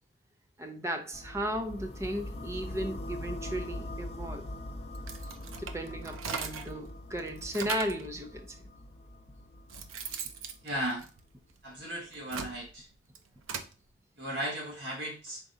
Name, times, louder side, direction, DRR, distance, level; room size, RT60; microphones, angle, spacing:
voice 1, 0.6-4.5 5.6-8.5, equal, 15° right, 5 dB, 0.5 m, -35 dB
sound 1, 1.1-11.1, left 1 dB, 35° left, 0.6 m, -42 dB
sound 2, 4.9-6.8 7.2-8.1 8.9-9.0 9.4-11.6 12.1-13.7, right 6 dB, 85° right, 0.6 m, -40 dB
voice 2, 10.6-11.0 11.6-12.9 14.2-15.4, equal, 60° right, -3 dB, 1.5 m, -36 dB
4.9 x 3.9 x 2.6 m, 0.35 s
head